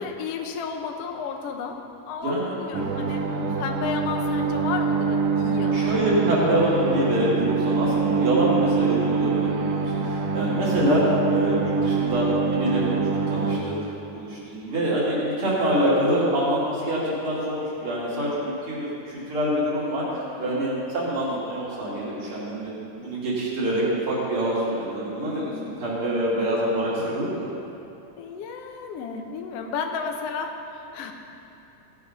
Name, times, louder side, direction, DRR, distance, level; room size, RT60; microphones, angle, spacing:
voice 1, 0.0-1.8 2.0-3.2 3.6-5.9 20.4-20.7 25.5-25.8 28.2-31.1, left 5 dB, 70° left, 3 dB, 1.5 m, -33 dB
voice 2, 2.2-2.5 3.0-3.1 3.4-3.5 5.7-27.5, right 1 dB, 40° right, -7 dB, 3.7 m, -25 dB
sound 1, 2.7-13.6, right 5 dB, 80° right, 1.2 m, -25 dB
16.0 x 8.3 x 5.5 m, 2.7 s
omnidirectional pair, 3.8 m